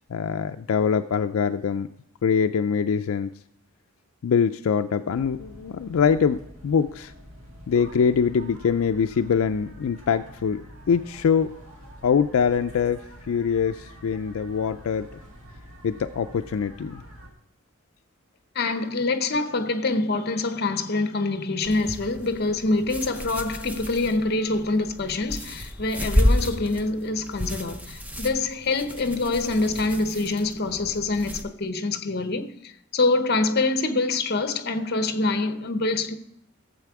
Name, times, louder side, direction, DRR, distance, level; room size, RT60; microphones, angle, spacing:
voice 1, 0.0-1.9 2.2-3.3 4.2-7.1 7.7-11.5 12.0-15.1 15.8-17.0, left 6 dB, 75° left, 0.4 m, -24 dB
sound 1, 5.1-17.3, equal, 70° right, 2.0 m, -46 dB
voice 2, 18.5-36.2, left 3 dB, 45° left, 0.7 m, -25 dB
sound 2, 21.6-31.4, left 1 dB, 5° right, 0.6 m, -30 dB
12.5 x 7.6 x 4.7 m
head